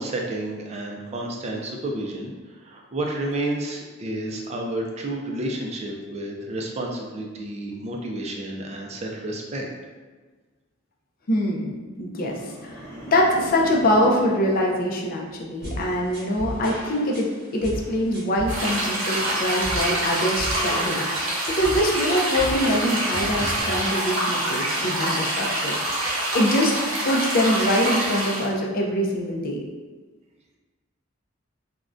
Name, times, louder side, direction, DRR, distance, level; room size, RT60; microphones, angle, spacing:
voice 1, 0.0-2.3 2.6-9.7, right 1 dB, 35° right, 0 dB, 0.4 m, -30 dB
voice 2, 11.3-11.7 12.0-21.1 21.5-26.1 26.3-26.7 27.0-29.6, equal, 45° left, -1 dB, 0.4 m, -24 dB
sound 1, 12.2-15.6 16.0-16.4, equal, 10° left, 0.8 m, -41 dB
sound 2, 15.6-23.6, equal, 50° right, 0.7 m, -35 dB
sound 3, 18.5-28.5, right 1 dB, 90° right, 0.8 m, -26 dB
3.5 x 2.1 x 2.5 m, 1.3 s
head